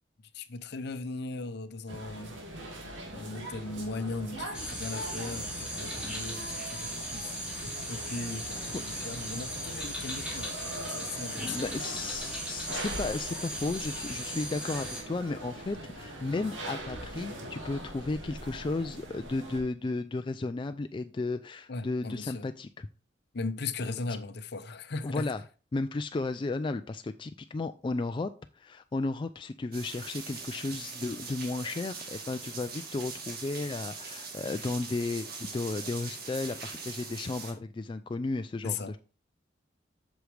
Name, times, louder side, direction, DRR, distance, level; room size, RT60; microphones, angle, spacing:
voice 1, 0.3-2.4 2.8-7.4 7.9-8.6 8.9-11.6 21.7-22.5 23.3-25.3 38.6-38.9, left 3 dB, 60° left, 0.7 m, -38 dB
sound 1, 1.9-19.6, right 1 dB, 85° right, 2.1 m, -42 dB
sound 2, 4.5-15.0, equal, 5° right, 2.5 m, -38 dB
voice 2, 11.3-22.9 25.0-25.4 25.7-39.0, left 3 dB, 25° left, 0.3 m, -34 dB
sound 3, 29.7-37.5, right 4 dB, 55° right, 2.0 m, -42 dB
8.0 x 6.3 x 3.3 m
head